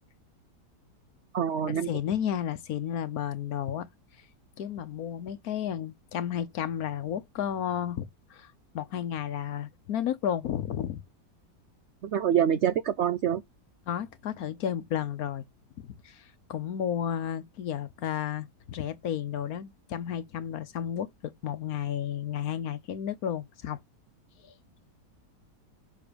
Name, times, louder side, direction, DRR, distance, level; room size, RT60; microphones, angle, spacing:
voice 1, 1.3-1.9 12.0-13.4, right 9 dB, 75° right, 0.6 m, -26 dB
voice 2, 1.8-3.9 4.6-11.0 13.9-15.4 15.8-23.8, left 9 dB, 65° left, 1.2 m, -32 dB
6.5 x 3.3 x 5.0 m
omnidirectional pair, 1.8 m